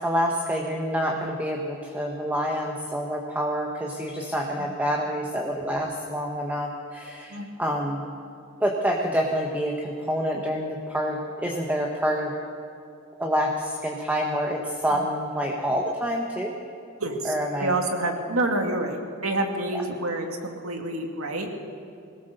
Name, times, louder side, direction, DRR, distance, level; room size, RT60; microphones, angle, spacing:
voice 1, 0.0-8.1 8.6-12.3 13.2-16.5 17.2-17.7, equal, 10° right, 0 dB, 1.4 m, -27 dB
voice 2, 4.6-5.0 7.3-7.5 14.9-15.1 17.0-21.5, right 2 dB, 80° right, 3 dB, 2.3 m, -28 dB
21.5 x 18.0 x 6.8 m, 2.6 s
head